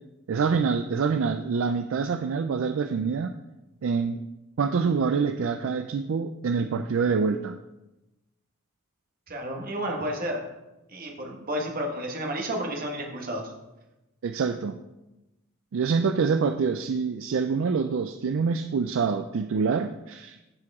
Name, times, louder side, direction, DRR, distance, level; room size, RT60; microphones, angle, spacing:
voice 1, 0.3-3.4 3.8-4.3 4.6-7.6 14.2-14.8 15.7-20.4, right 5 dB, 60° right, 8 dB, 0.3 m, -26 dB
voice 2, 9.3-10.4 10.9-13.5, equal, 40° right, 1 dB, 1.5 m, -31 dB
14.0 x 4.7 x 3.6 m, 1.0 s
head